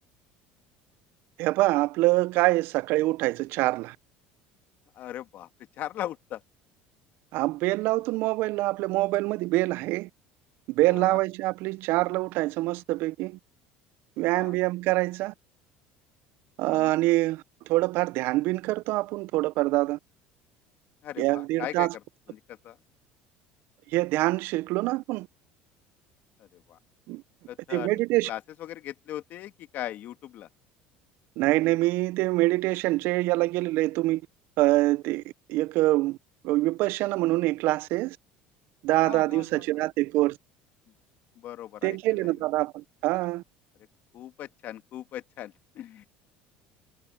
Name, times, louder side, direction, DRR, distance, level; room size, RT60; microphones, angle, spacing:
voice 1, 1.4-4.0 7.3-10.1 10.7-13.4 14.2-15.3 16.6-17.4 17.7-20.0 21.2-21.9 23.9-25.3 27.1-27.2 27.7-28.3 31.4-34.2 34.6-35.2 35.5-36.2 36.4-38.2 38.8-40.4 41.8-43.4, right 19 dB, 60° right, 0.4 m, -25 dB
voice 2, 5.0-5.5 5.8-6.4 10.9-11.2 14.3-14.6 16.7-16.9 21.0-21.9 22.3-22.8 26.4-26.8 27.5-30.5 39.0-39.9 41.4-42.4 44.1-46.1, left 12 dB, 50° left, 2.0 m, -39 dB
cardioid pair, 140°, 4 cm